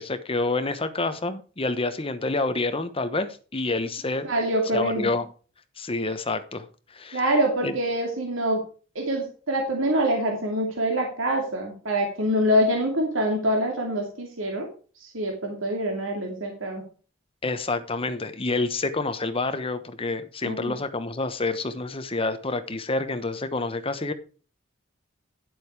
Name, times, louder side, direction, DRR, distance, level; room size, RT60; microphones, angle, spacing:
voice 1, 0.0-4.3 4.7-5.2 5.8-6.7 6.9-7.2 7.6-7.7 17.4-24.1, left 3 dB, 30° left, 10 dB, 1.1 m, -28 dB
voice 2, 4.2-5.1 7.1-8.6 8.9-14.7 15.0-16.8 20.4-20.8, equal, 85° right, 1 dB, 2.7 m, -25 dB
11.0 x 7.7 x 4.8 m, 0.38 s
head